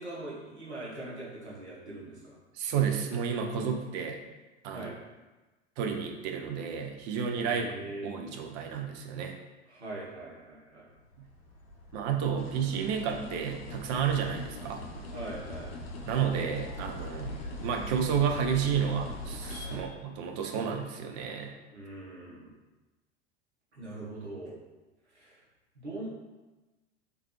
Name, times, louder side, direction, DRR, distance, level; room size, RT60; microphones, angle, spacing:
voice 1, 0.0-2.4 4.7-5.0 7.5-8.1 9.7-10.9 15.1-15.7 19.7-19.9 21.7-22.5 23.7-24.6 25.1-25.4 25.7-26.1, right 2 dB, 80° right, -5 dB, 1.2 m, -42 dB
voice 2, 2.5-4.2 4.6-4.9 5.8-7.7 8.0-9.3 11.9-14.8 16.1-17.3 17.6-21.5, right 7 dB, 40° right, 4 dB, 0.5 m, -31 dB
sound 1, 11.0-19.8, left 1 dB, 40° left, 0.8 m, -42 dB
sound 2, 12.4-19.8, left 4 dB, 65° left, 0.6 m, -46 dB
3.3 x 3.2 x 3.1 m, 1.1 s
figure-of-eight pair, 85°, 33 cm